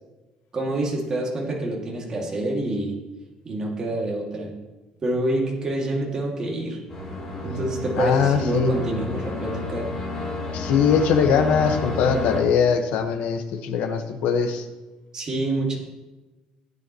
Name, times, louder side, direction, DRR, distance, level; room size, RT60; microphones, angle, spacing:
voice 1, 0.5-3.0 3.4-4.5 5.0-6.8 7.4-9.9 15.1-15.8, right 1 dB, 25° right, -2 dB, 2.3 m, -27 dB
sound 1, 6.9-12.4, left 2 dB, 15° left, 4.4 m, -30 dB
voice 2, 8.0-8.7 10.5-14.6, left 6 dB, 85° left, 6 dB, 1.3 m, -21 dB
16.5 x 9.5 x 3.1 m, 1.1 s
cardioid pair, 160°, 2 cm